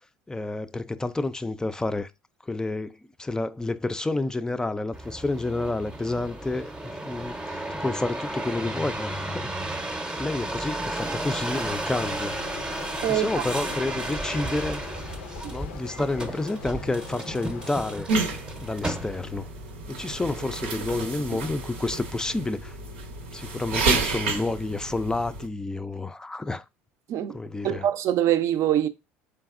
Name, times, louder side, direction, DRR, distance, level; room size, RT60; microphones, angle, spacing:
voice 1, 0.3-2.1 2.4-9.5 10.2-12.4 13.1-14.8 15.5-18.1 18.6-19.5 19.9-22.8 23.3-26.6 27.3-27.9, left 2 dB, 10° left, 0.3 m, -30 dB
sound 1, 4.9-19.5 20.1-20.6, right 1 dB, 15° right, 0.7 m, -33 dB
sound 2, 12.0-18.0, left 5 dB, 90° left, 0.5 m, -42 dB
voice 2, 13.0-13.4 15.4-15.5 27.1-27.4 27.6-28.9, right 11 dB, 55° right, 0.4 m, -24 dB
sound 3, 18.1-25.5, right 3 dB, 90° right, 0.7 m, -30 dB
3.9 x 3.4 x 2.4 m
hypercardioid pair, 80°, 6 cm